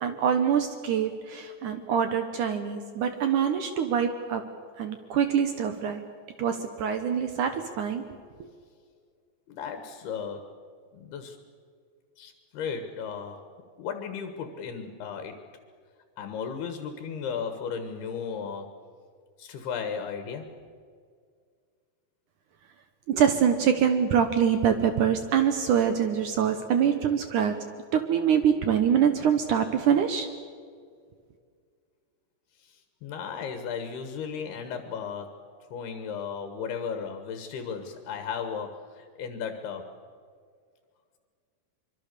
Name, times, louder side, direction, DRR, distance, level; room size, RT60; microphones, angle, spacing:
voice 1, 0.0-4.4 4.8-6.0 6.4-8.0 23.1-27.6 27.9-30.3, right 8 dB, 70° right, 8 dB, 2.0 m, -24 dB
voice 2, 9.5-10.5 10.9-11.4 12.2-13.5 13.8-15.5 16.2-18.8 19.4-20.6 32.6-39.9, left 6 dB, 75° left, 7 dB, 3.3 m, -35 dB
24.5 x 23.5 x 6.8 m, 2.1 s
omnidirectional pair, 4.8 m